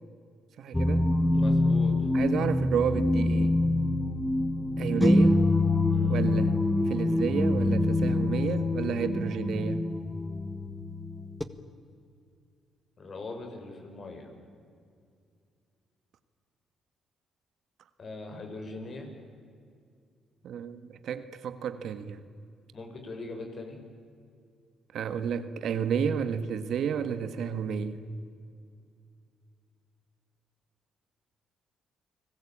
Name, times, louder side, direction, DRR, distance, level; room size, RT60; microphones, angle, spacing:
voice 1, 0.6-1.1 2.1-3.6 4.8-5.4 6.1-6.5 6.9-9.9 20.4-22.2 24.9-28.0, right 7 dB, 70° right, 1.6 m, -31 dB
sound 1, 0.7-11.4, left 2 dB, 10° left, 1.7 m, -25 dB
voice 2, 1.3-2.1 5.0-5.3 5.9-6.2 13.0-14.3 18.0-19.1 22.7-23.8, left 2 dB, 45° left, 6.2 m, -41 dB
29.5 x 19.5 x 8.7 m
supercardioid pair, 70°, 0 cm